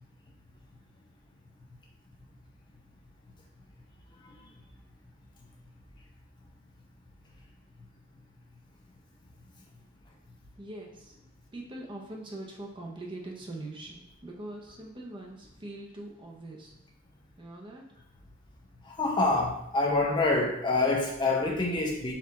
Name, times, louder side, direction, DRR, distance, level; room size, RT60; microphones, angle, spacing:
voice 1, 10.6-11.2 11.5-16.7 17.4-17.8, right 2 dB, 25° right, -1 dB, 0.6 m, -42 dB
voice 2, 18.8-22.1, left 2 dB, 20° left, -1 dB, 0.5 m, -26 dB
4.4 x 2.4 x 4.0 m, 0.81 s
head